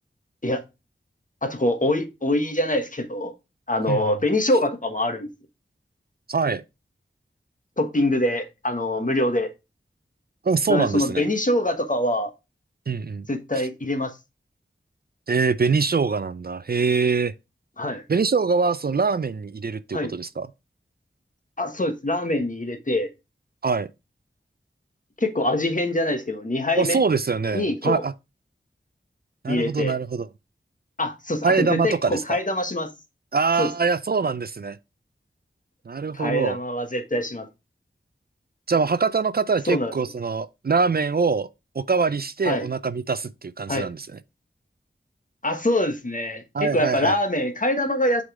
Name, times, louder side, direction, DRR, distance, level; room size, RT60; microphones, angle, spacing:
voice 1, 1.4-3.3 3.7-5.3 7.8-9.5 10.7-12.3 13.3-14.1 17.8-18.0 19.9-20.1 21.6-23.1 25.2-27.0 27.5-28.0 29.5-29.9 31.0-32.9 33.6-33.7 36.1-37.5 39.7-39.9 42.4-42.7 43.7-43.9 45.4-48.2, left 1 dB, 40° left, 1.3 m, -24 dB
voice 2, 6.3-6.6 10.4-11.3 12.9-13.3 15.3-17.3 18.1-20.5 23.6-23.9 26.8-28.1 29.4-30.3 31.4-32.4 33.3-34.8 35.9-36.6 38.7-41.5 41.8-44.2 46.5-47.2, right 4 dB, 50° right, 0.5 m, -23 dB
6.4 x 3.9 x 4.8 m
wide cardioid pair, 45°, 20 cm